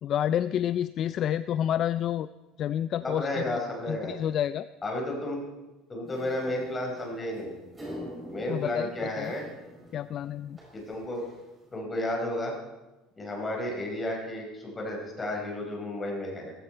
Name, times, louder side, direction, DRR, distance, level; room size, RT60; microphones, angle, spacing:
voice 1, 0.0-2.3 2.6-3.6 3.9-4.7 8.5-8.9 9.2-9.3 9.9-10.6, left 10 dB, 45° left, 14 dB, 0.4 m, -29 dB
voice 2, 3.0-4.2 4.8-5.4 5.9-7.5 8.3-9.4 10.7-11.3 11.7-12.5 13.2-16.5, left 1 dB, 20° left, 0 dB, 4.8 m, -32 dB
sound 1, 6.0-11.8, equal, 15° right, 5.4 m, -46 dB
17.5 x 15.5 x 4.5 m, 1.1 s
cardioid pair, 140°, 0 cm